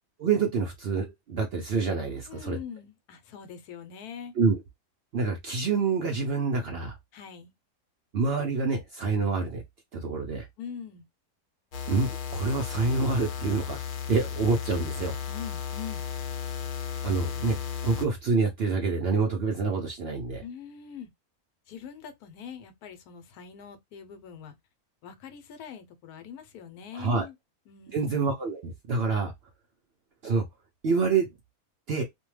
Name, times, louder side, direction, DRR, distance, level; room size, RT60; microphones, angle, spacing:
voice 1, 0.2-2.6 4.4-4.6 5.1-7.0 8.1-9.6 9.9-10.5 11.9-13.8 14.1-15.1 17.0-17.6 17.8-20.4 26.9-27.3 27.9-29.3 30.2-30.4 30.8-31.3 31.9-32.0, right 4 dB, 65° right, 0.6 m, -27 dB
voice 2, 2.3-4.3 7.1-7.5 10.6-11.0 15.3-16.0 20.4-21.1 21.7-24.5 25.0-27.3 27.7-28.3, left 7 dB, 85° left, 1.2 m, -43 dB
sound 1, 11.7-18.1, left 7 dB, 65° left, 1.0 m, -34 dB
2.6 x 2.2 x 3.1 m
omnidirectional pair, 1.6 m